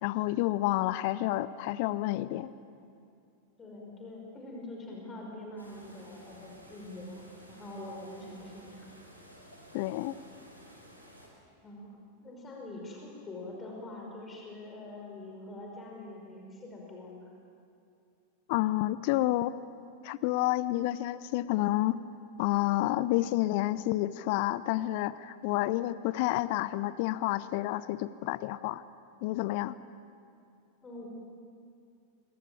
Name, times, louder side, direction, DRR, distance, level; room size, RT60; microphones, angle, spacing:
voice 1, 0.0-2.5 9.7-10.1 18.5-19.5 20.0-22.0 22.4-28.8 29.2-29.8, left 16 dB, 45° left, 17 dB, 0.6 m, -29 dB
voice 2, 3.6-8.9 11.6-11.9 12.2-17.3 30.8-31.1, left 2 dB, 20° left, -1 dB, 5.3 m, -44 dB
sound 1, 5.6-11.3, equal, 85° right, 5.2 m, -54 dB
25.5 x 22.5 x 8.9 m, 2.5 s
figure-of-eight pair, 90°, 0 cm